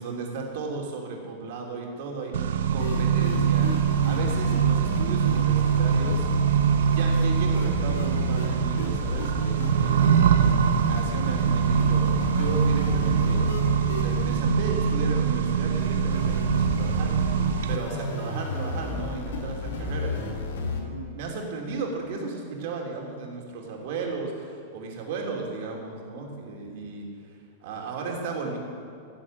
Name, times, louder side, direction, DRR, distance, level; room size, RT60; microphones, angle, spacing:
voice 1, 0.0-6.3 6.9-13.5 14.0-17.1 17.7-27.0 27.6-28.6, right 4 dB, 50° right, 0 dB, 3.0 m, -35 dB
Accelerating revving vroom, 2.3-17.8, right 7 dB, 80° right, 1.0 m, -23 dB
sound 1, 2.8-20.8, left 3 dB, 85° left, 2.5 m, -33 dB
16.5 x 7.7 x 7.7 m, 2.6 s
supercardioid pair, 165°, 0 cm